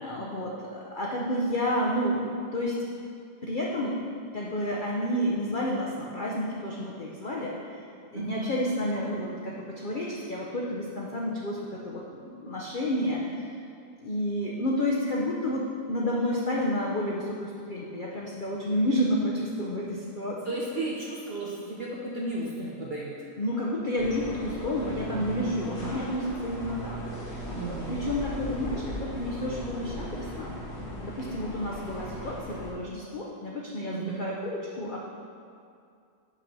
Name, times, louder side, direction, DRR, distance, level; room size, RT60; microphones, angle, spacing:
voice 1, 0.0-2.8 3.4-4.0 4.3-7.8 8.1-13.5 14.0-20.6 23.4-27.0 27.7-30.6 31.0-35.0, left 1 dB, 50° left, -3 dB, 0.6 m, -30 dB
voice 2, 8.1-8.5 20.5-23.2 25.1-26.0 27.5-28.0 33.9-34.2, right 2 dB, 50° right, -4 dB, 0.8 m, -34 dB
sound 1, 24.0-32.7, equal, 80° left, 2.0 m, -38 dB
6.0 x 5.4 x 6.1 m, 2.4 s
omnidirectional pair, 1.8 m